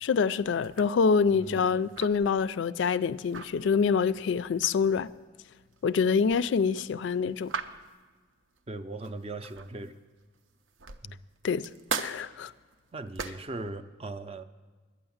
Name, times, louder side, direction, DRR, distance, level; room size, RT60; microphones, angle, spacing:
voice 1, 0.0-5.1 5.8-7.5 11.4-11.7 12.0-12.5, left 5 dB, 70° left, 0.3 m, -26 dB
sound 1, 0.6-9.9 10.4-13.6, right 5 dB, 75° right, 0.6 m, -41 dB
voice 2, 1.3-1.8 8.7-9.9 11.0-11.2 12.9-14.4, right 2 dB, 30° right, 0.4 m, -39 dB
12.0 x 9.3 x 7.1 m
head